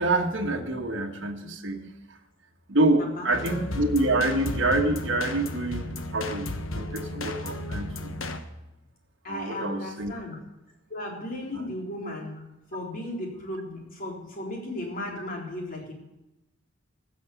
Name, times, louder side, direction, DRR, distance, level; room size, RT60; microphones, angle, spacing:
voice 1, 0.0-1.9 2.7-7.9 9.3-10.1 11.5-11.7, right 2 dB, 65° right, 2 dB, 1.4 m, -26 dB
voice 2, 2.9-3.6 9.2-10.4 10.9-12.4 12.7-15.9, left 1 dB, 45° left, -1 dB, 3.6 m, -35 dB
sound 1, 3.3-8.4, left 2 dB, 85° left, 1.2 m, -33 dB
15.5 x 6.5 x 7.0 m, 0.95 s
head